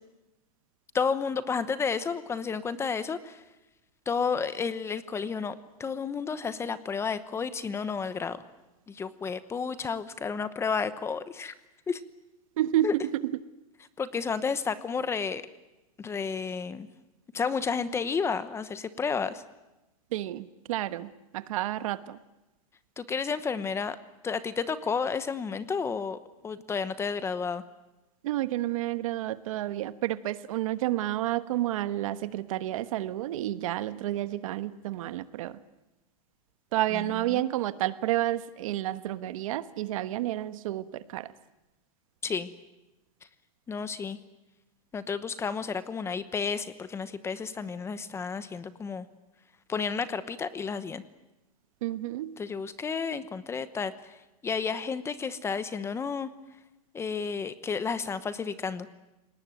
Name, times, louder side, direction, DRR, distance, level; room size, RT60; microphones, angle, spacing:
voice 1, 0.9-3.4 4.1-8.4 8.9-11.5 11.9-12.0 12.8-12.9 14.0-15.4 16.0-16.9 17.3-19.4 23.0-24.0 24.2-27.6 36.9-37.4 42.2-42.5 43.7-44.2 44.9-49.1 49.7-51.0 52.4-54.1 54.4-56.3 56.9-58.9, left 5 dB, 15° left, 14 dB, 1.0 m, -31 dB
voice 2, 12.6-13.2 20.1-22.2 28.2-35.6 36.7-41.3 51.8-52.3, right 14 dB, 60° right, 13 dB, 1.3 m, -30 dB
29.5 x 19.0 x 9.3 m, 1.0 s
supercardioid pair, 145°, 19 cm